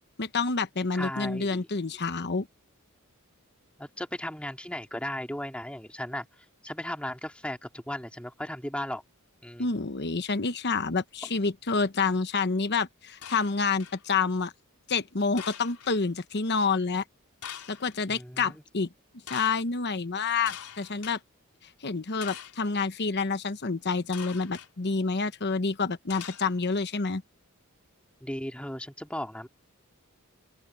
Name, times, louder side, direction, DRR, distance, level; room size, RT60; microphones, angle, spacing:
voice 1, 0.2-2.5 9.6-14.5 14.9-17.0 17.7-18.9 19.3-21.2 21.8-27.2, left 4 dB, 50° left, 1.0 m, -28 dB
voice 2, 0.9-1.6 3.8-6.3 6.6-9.0 9.4-9.7 11.2-11.3 18.1-18.6 28.2-29.5, left 1 dB, 5° left, 2.5 m, -36 dB
sound 1, 13.2-14.0 15.4-16.0 17.4-18.0 19.3-19.6 20.5-21.2 22.2-22.7 24.1-24.7 26.1-26.8, left 9 dB, 85° left, 4.2 m, -43 dB
open air
head